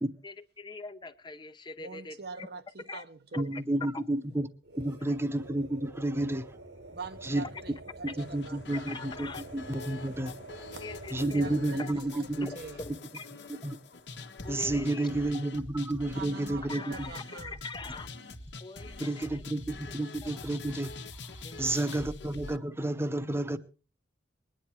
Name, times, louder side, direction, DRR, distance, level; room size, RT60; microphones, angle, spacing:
voice 1, 0.2-2.5 2.9-3.0 3.3-3.6 3.9-4.1 5.0-5.2 8.7-9.4 10.8-11.9 12.4-13.3 14.4-15.4 16.7-18.1 18.6-19.4 20.2-20.3 21.4-22.0, left 3 dB, 25° left, 0.7 m, -43 dB
voice 2, 1.8-3.7 6.9-9.1 10.7-10.8 11.2-12.8 16.1-17.6, right 4 dB, 65° right, 1.0 m, -44 dB
voice 3, 3.4-4.5 4.8-6.5 7.2-7.4 8.0-10.7 11.1-12.5 13.5-13.8 14.5-17.1 19.0-20.9 21.6-23.6, right 1 dB, 15° right, 0.9 m, -31 dB
sound 1, 4.6-12.0, right 2 dB, 80° right, 2.2 m, -48 dB
sound 2, 8.2-22.6, left 3 dB, 70° left, 1.4 m, -45 dB
21.0 x 10.0 x 4.5 m
head